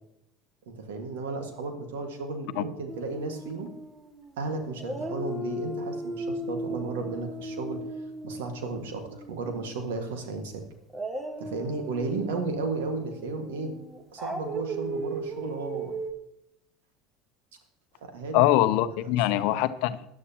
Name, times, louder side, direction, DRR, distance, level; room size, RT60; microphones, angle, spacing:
voice 1, 0.6-3.7 4.4-7.9 8.2-10.6 11.4-13.8 14.1-16.0 18.0-18.4 19.4-19.6, right 3 dB, 80° right, 1.8 m, -34 dB
Dog, 2.9-4.4 4.8-9.9 10.9-16.1, right 1 dB, 15° right, 1.4 m, -37 dB
voice 2, 18.3-20.1, left 14 dB, 65° left, 0.6 m, -23 dB
16.5 x 10.5 x 3.0 m
hypercardioid pair, 75°, 0 cm